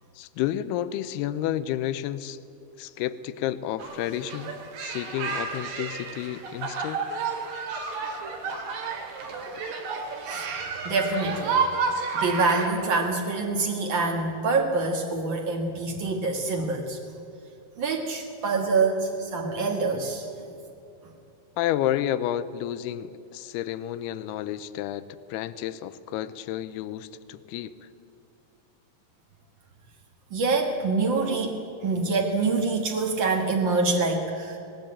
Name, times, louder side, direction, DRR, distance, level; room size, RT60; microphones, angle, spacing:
voice 1, 0.2-2.4 2.8-7.1 8.1-8.2 21.6-27.7, left 12 dB, 85° left, 13 dB, 2.7 m, -31 dB
sound 1, 3.8-12.7, right 5 dB, 75° right, 4.3 m, -31 dB
voice 2, 10.8-11.6 12.1-17.0 17.8-20.5 30.3-31.6 31.8-34.6, right 3 dB, 60° right, 1 dB, 1.2 m, -26 dB
20.0 x 17.5 x 8.7 m, 2.6 s
omnidirectional pair, 4.6 m